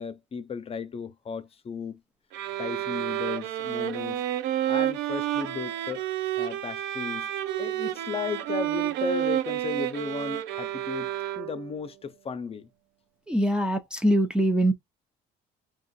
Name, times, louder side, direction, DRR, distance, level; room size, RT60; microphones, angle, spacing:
voice 1, 0.0-2.0 2.6-4.2 4.7-6.0 6.4-7.3 7.6-11.1 11.4-12.7, left 5 dB, 35° left, 0.7 m, -35 dB
sound 1, 2.3-11.8, right 12 dB, 90° right, 0.5 m, -30 dB
voice 2, 13.3-14.7, right 1 dB, 5° right, 0.5 m, -23 dB
2.5 x 2.3 x 4.0 m
cardioid pair, 110°, 17 cm